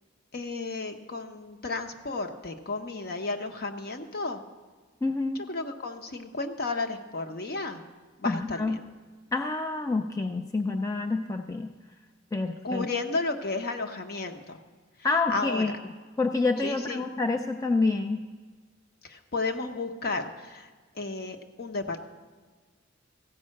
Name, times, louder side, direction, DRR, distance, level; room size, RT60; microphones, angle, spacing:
voice 1, 0.3-4.4 5.3-7.8 8.2-8.8 12.6-14.6 15.3-15.7 16.6-17.1 19.0-20.7 20.9-22.0, left 3 dB, 50° left, 6 dB, 0.9 m, -33 dB
voice 2, 5.0-5.4 8.3-8.8 9.3-11.7 12.3-12.9 15.0-15.7 16.2-18.2, left 3 dB, 15° left, 5 dB, 0.4 m, -27 dB
15.0 x 5.5 x 7.6 m, 1.4 s
head